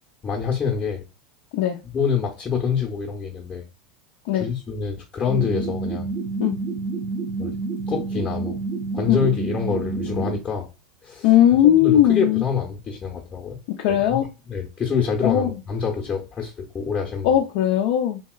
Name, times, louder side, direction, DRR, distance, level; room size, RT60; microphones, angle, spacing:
voice 1, 0.2-1.0 1.9-3.6 4.3-6.1 7.4-7.5 7.9-8.6 8.9-10.7 11.0-11.3 11.6-13.6 13.9-14.0 14.5-17.4, left 6 dB, 25° left, 0.8 m, -26 dB
sound 1, 5.3-10.4, right 4 dB, 15° right, 0.7 m, -28 dB
voice 2, 11.2-12.4 13.8-14.3 15.2-15.6 17.2-18.2, left 11 dB, 60° left, 0.4 m, -18 dB
2.9 x 2.8 x 2.3 m
hypercardioid pair, 95°, 4 cm